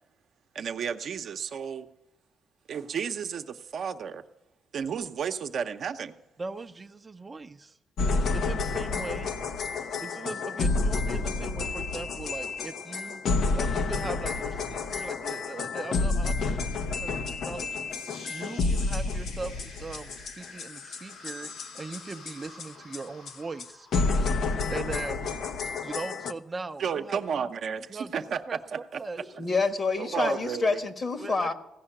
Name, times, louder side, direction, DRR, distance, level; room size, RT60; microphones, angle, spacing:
voice 1, 0.5-1.9 2.7-4.2 4.7-6.1 26.8-29.0 30.0-30.8, right 7 dB, 60° right, 6 dB, 0.8 m, -32 dB
voice 2, 6.4-7.8 8.1-9.4 10.0-13.2 13.5-17.9 18.3-27.5 27.9-28.6 28.9-29.2 31.2-31.5, right 3 dB, 25° right, 7 dB, 0.6 m, -40 dB
sound 1, 8.0-22.7 22.9-23.0 23.3-23.4 23.6-23.7 23.9-26.3, left 3 dB, 65° left, 0.7 m, -30 dB
sound 2, 17.9-26.0, left 3 dB, 85° left, 3.7 m, -49 dB
voice 3, 29.2-31.5, left 4 dB, 40° left, 8 dB, 1.3 m, -28 dB
16.0 x 5.6 x 9.9 m, 0.94 s
cardioid pair, 90°, 0 cm